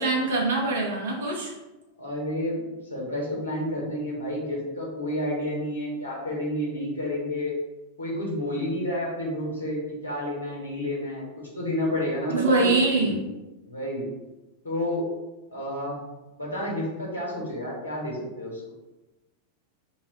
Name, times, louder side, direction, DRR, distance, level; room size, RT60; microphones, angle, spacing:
voice 1, 0.0-1.5 12.3-13.2, right 3 dB, 65° right, -2 dB, 1.0 m, -23 dB
voice 2, 2.0-2.6 2.9-7.5 8.0-12.7 13.7-14.1 14.6-15.0 15.5-16.0 16.4-18.7, left 1 dB, 70° left, -3 dB, 1.3 m, -30 dB
3.9 x 2.4 x 4.0 m, 1.1 s
figure-of-eight pair, 90°, 0 cm